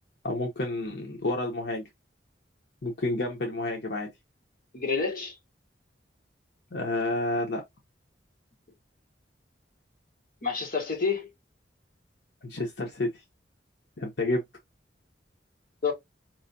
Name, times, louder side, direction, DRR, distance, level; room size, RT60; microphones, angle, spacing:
voice 1, 0.2-1.8 2.8-4.1 6.7-7.6 12.4-13.2 14.0-14.4, left 2 dB, 70° left, 0.8 m, -30 dB
voice 2, 4.7-5.4 10.4-11.3 15.8-15.9, left 5 dB, 50° left, 1.4 m, -28 dB
4.4 x 3.1 x 2.6 m
head